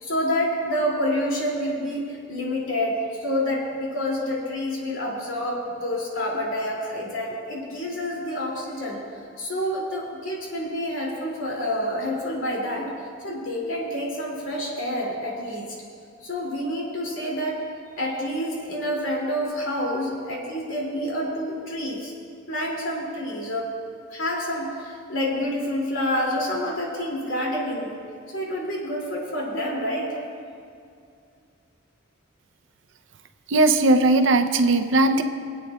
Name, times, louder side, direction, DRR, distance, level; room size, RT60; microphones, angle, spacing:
voice 1, 0.0-9.0 9.4-12.9 13.2-15.7 16.2-17.6 18.0-22.1 22.5-23.7 24.1-28.0 28.3-30.2, equal, 80° left, -3 dB, 2.4 m, -28 dB
voice 2, 33.5-35.2, right 2 dB, 65° right, 7 dB, 0.6 m, -18 dB
24.0 x 8.6 x 2.3 m, 2.4 s
head